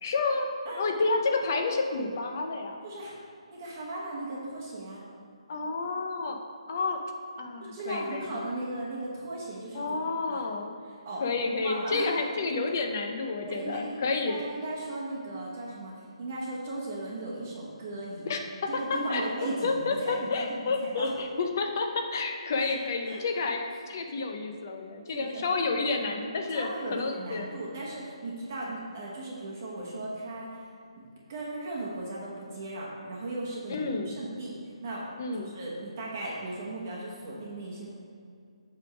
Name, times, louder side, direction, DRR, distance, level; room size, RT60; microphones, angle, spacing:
voice 1, 0.0-0.5 0.7-2.8 5.5-6.4 6.7-7.0 7.4-8.5 9.7-10.7 11.2-14.4 18.3-18.4 19.1-19.3 19.6-27.5 33.7-34.1 35.2-35.5, left 3 dB, 30° left, 4 dB, 0.6 m, -30 dB
voice 2, 2.8-3.2 3.5-5.0 7.6-10.0 10.3-10.4 10.8-11.3 11.6-12.1 13.5-21.1 22.6-22.7 23.0-23.4 25.1-25.5 26.5-30.7 31.0-37.9, right 2 dB, 25° right, -5 dB, 1.0 m, -37 dB
8.1 x 3.5 x 5.9 m, 2.4 s
hypercardioid pair, 175°, 3 cm